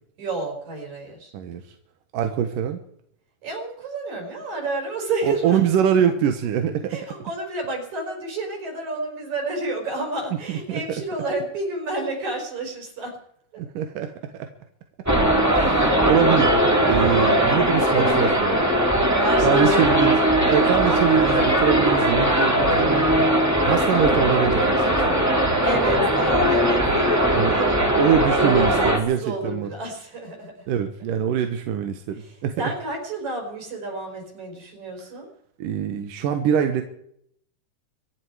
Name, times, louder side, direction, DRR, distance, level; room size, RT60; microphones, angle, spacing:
voice 1, 0.2-1.3 3.4-5.6 6.9-13.1 16.9-17.2 19.2-20.0 21.2-21.5 25.6-27.8 28.2-30.7 32.2-35.3, right 2 dB, 60° right, 1 dB, 6.3 m, -30 dB
voice 2, 2.1-2.8 5.2-7.0 10.5-10.8 13.6-14.1 15.5-18.6 19.4-23.1 23.6-25.6 27.3-27.6 28.0-29.7 30.7-32.5 35.6-36.8, right 8 dB, 85° right, 7 dB, 2.8 m, -24 dB
sound 1, 15.1-29.0, right 1 dB, 5° right, 1.7 m, -19 dB
25.5 x 11.0 x 4.9 m, 0.69 s
omnidirectional pair, 3.7 m